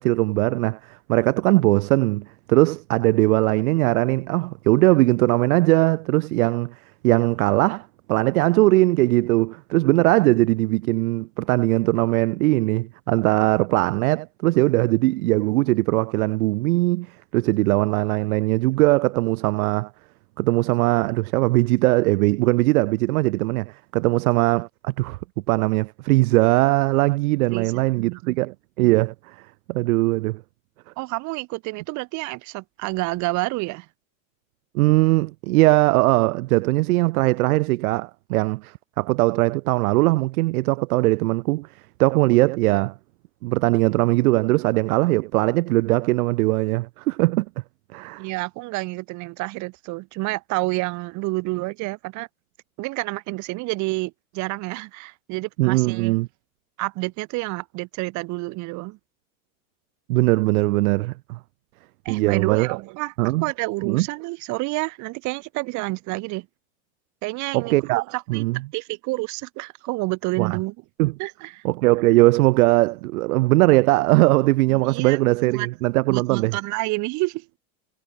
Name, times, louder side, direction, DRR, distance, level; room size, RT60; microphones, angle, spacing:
voice 1, 0.0-6.7 7.0-19.9 20.4-25.2 25.5-29.4 29.7-30.4 34.7-41.7 42.0-42.9 43.4-47.5 47.9-48.3 55.6-56.3 60.1-61.4 62.1-62.8 63.2-63.4 63.8-64.1 67.5-68.6 70.4-70.6 71.0-71.1 71.6-76.6, right 21 dB, 80° right, 0.8 m, -20 dB
voice 2, 27.5-28.4 31.0-33.9 48.2-52.3 52.8-56.2 56.8-59.0 62.0-63.1 63.4-66.5 67.2-68.5 68.7-70.7 71.2-71.6 74.7-75.2 75.4-75.7 76.1-77.6, right 23 dB, 40° right, 6.2 m, -29 dB
supercardioid pair, 170°, 43 cm